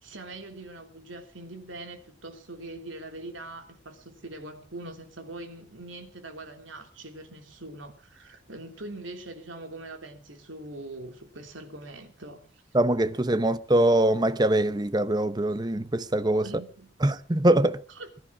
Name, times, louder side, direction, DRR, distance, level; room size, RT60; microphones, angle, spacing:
voice 1, 0.0-12.6 16.4-16.9 17.9-18.1, right 2 dB, 90° right, 3.2 m, -42 dB
voice 2, 12.7-16.5 17.0-17.8, right 1 dB, 20° right, 0.7 m, -23 dB
21.0 x 11.5 x 6.1 m
head